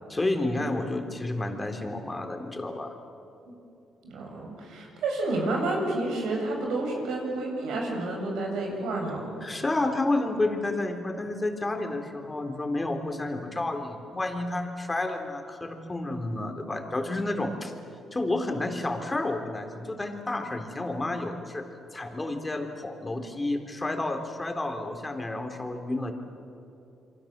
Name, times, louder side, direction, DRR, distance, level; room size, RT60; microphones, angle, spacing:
voice 1, 0.1-3.0 9.4-17.7 18.1-21.6 21.9-26.1, left 2 dB, 20° left, 4 dB, 3.5 m, -30 dB
voice 2, 4.0-9.4, right 2 dB, 85° right, 0 dB, 7.4 m, -30 dB
28.0 x 24.5 x 7.5 m, 2.8 s
cardioid pair, 90°, 0 cm